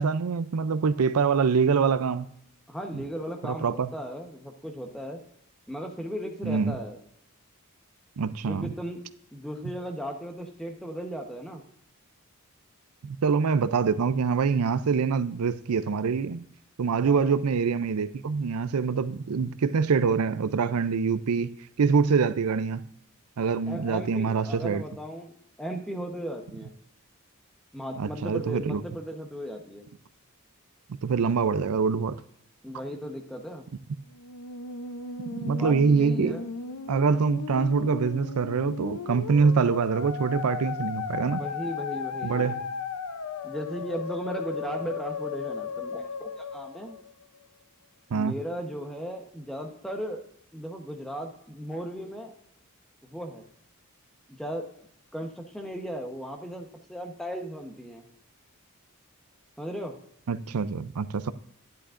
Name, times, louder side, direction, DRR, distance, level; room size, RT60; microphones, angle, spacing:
voice 1, 0.0-2.3 2.9-3.0 3.4-3.9 6.4-6.7 8.2-8.7 13.0-16.5 16.8-21.5 21.8-22.9 23.4-24.8 28.0-28.8 31.0-32.2 35.4-36.3 36.9-41.4 42.2-42.6 48.1-48.4 60.3-61.3, right 5 dB, 85° right, 0.5 m, -25 dB
voice 2, 2.7-5.2 5.7-7.0 8.5-9.0 9.3-11.6 17.0-17.4 23.7-26.7 27.7-29.9 32.6-33.7 35.4-36.4 41.2-42.5 43.4-47.0 48.1-50.2 50.5-52.3 53.0-53.4 54.3-54.7 55.1-58.0 59.6-60.0, equal, ahead, 0.9 m, -36 dB
Musical instrument, 34.1-47.5, left 5 dB, 85° left, 0.7 m, -36 dB
11.5 x 10.5 x 2.5 m
head